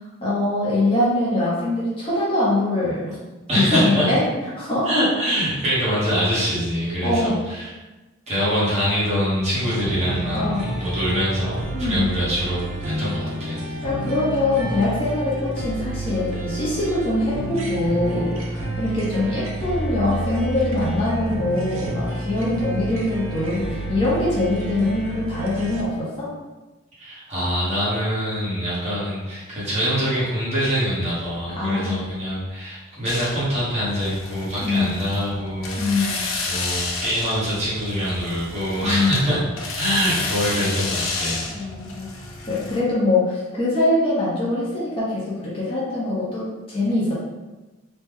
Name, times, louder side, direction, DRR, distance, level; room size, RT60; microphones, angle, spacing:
voice 1, 0.2-3.2 3.7-4.2 4.6-4.9 7.0-7.3 10.3-10.6 11.7-12.1 13.8-26.3 31.6-32.0 34.6-35.1 35.8-36.2 38.8-39.3 41.5-42.1 42.5-47.1, left 2 dB, 25° left, -8 dB, 0.8 m, -23 dB
voice 2, 3.5-4.1 4.8-7.7 8.3-13.7 27.0-39.4 39.7-41.5, equal, 30° right, -9 dB, 1.1 m, -24 dB
sound 1, 9.5-25.8, right 2 dB, 80° right, 0.6 m, -30 dB
sound 2, 33.1-42.8, left 3 dB, 75° left, 0.5 m, -31 dB
3.1 x 2.2 x 3.5 m, 1.2 s
head